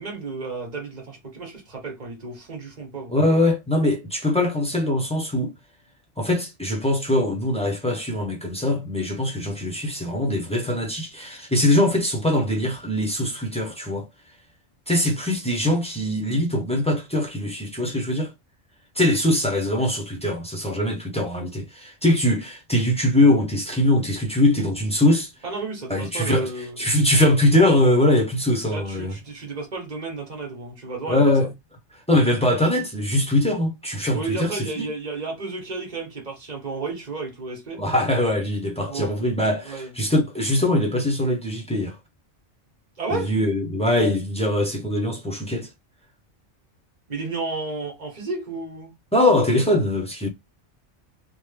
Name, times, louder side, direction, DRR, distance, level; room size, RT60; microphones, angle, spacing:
voice 1, 0.0-3.1 25.4-26.8 28.7-31.3 34.1-37.8 38.9-39.1 39.6-39.9 43.0-43.3 47.1-48.9, right 3 dB, 40° right, 1.2 m, -32 dB
voice 2, 3.1-5.5 6.2-14.1 14.9-18.3 19.0-25.3 25.9-26.5 26.8-29.1 31.1-31.5 32.1-34.9 37.8-42.0 43.1-45.7 49.1-50.3, left 1 dB, 5° left, 0.6 m, -22 dB
3.2 x 2.1 x 3.2 m
omnidirectional pair, 1.2 m